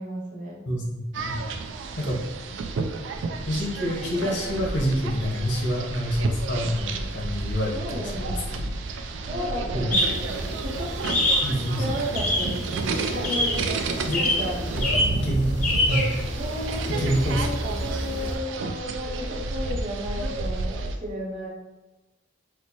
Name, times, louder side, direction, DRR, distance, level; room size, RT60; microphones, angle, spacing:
voice 1, 0.0-0.7 7.7-8.5 9.1-11.1 11.8-12.6 13.1-13.7 14.1-14.6 14.9-15.4 16.4-21.5, equal, 45° right, -2 dB, 0.7 m, -34 dB
voice 2, 0.7-1.5 2.0-2.2 3.4-8.6 9.7-10.0 11.4-11.8 12.9-13.0 14.1-15.5 15.9-16.1 16.9-17.4, equal, 85° left, -2 dB, 0.8 m, -27 dB
sound 1, 1.1-21.0, right 3 dB, 90° right, 0.3 m, -31 dB
sound 2, 9.9-18.3, left 1 dB, 40° left, 0.7 m, -27 dB
4.4 x 2.1 x 2.8 m, 1.1 s
head